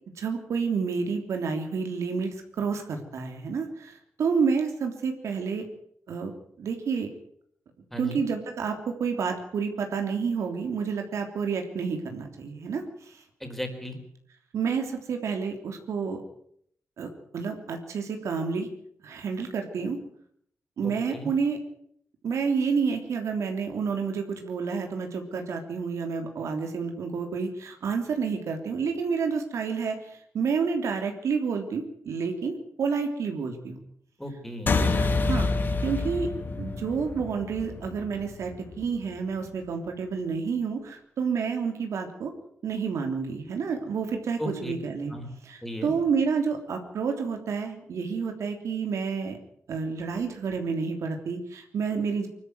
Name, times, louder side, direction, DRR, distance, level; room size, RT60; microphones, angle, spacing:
voice 1, 0.2-3.9 4.2-5.6 6.1-6.3 6.6-7.1 8.0-12.8 14.5-16.2 17.0-18.7 19.0-20.0 20.8-21.6 22.2-30.0 30.3-33.8 35.0-35.5 35.8-36.3 36.6-42.3 42.6-45.1 45.4-49.4 49.7-52.3, right 5 dB, 80° right, 4 dB, 3.3 m, -29 dB
voice 2, 7.9-8.2 13.4-14.0 20.8-21.3 34.2-34.7 44.4-44.7 45.1-45.3 45.6-45.9, equal, 5° left, 5 dB, 4.1 m, -35 dB
sound 1, 34.7-39.5, left 3 dB, 40° left, 2.1 m, -28 dB
25.0 x 13.0 x 9.5 m, 0.67 s
wide cardioid pair, 170°, 5 cm